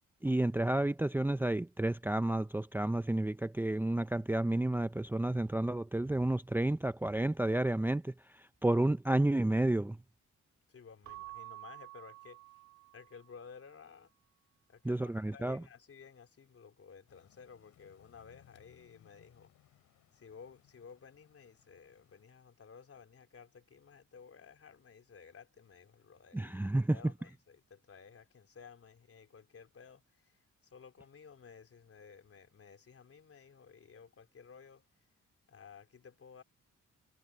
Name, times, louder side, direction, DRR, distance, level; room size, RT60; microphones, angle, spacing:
voice 1, 0.2-8.1 8.6-10.0 14.8-15.6 26.3-27.0, right 1 dB, 5° right, 0.7 m, -31 dB
voice 2, 10.7-12.4 12.9-14.1 14.7-19.5 20.1-30.4 30.6-34.8 35.5-36.4, left 6 dB, 50° left, 3.6 m, -55 dB
Keyboard (musical) / Bell, 11.0-13.5, right 18 dB, 70° right, 3.1 m, -50 dB
sound 1, 17.1-22.2, left 13 dB, 90° left, 6.9 m, -66 dB
cardioid pair, 75°, 30 cm